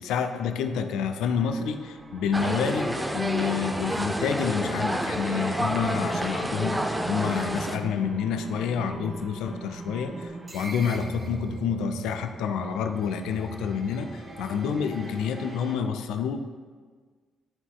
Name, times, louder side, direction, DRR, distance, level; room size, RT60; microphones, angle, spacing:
voice 1, 0.0-16.4, left 6 dB, 75° left, 8 dB, 0.4 m, -28 dB
sound 1, 1.2-15.8, right 3 dB, 35° right, 0.9 m, -41 dB
sound 2, 2.3-7.8, right 1 dB, 10° right, 0.5 m, -29 dB
11.5 x 4.0 x 2.3 m, 1.6 s
hypercardioid pair, 50°, 0 cm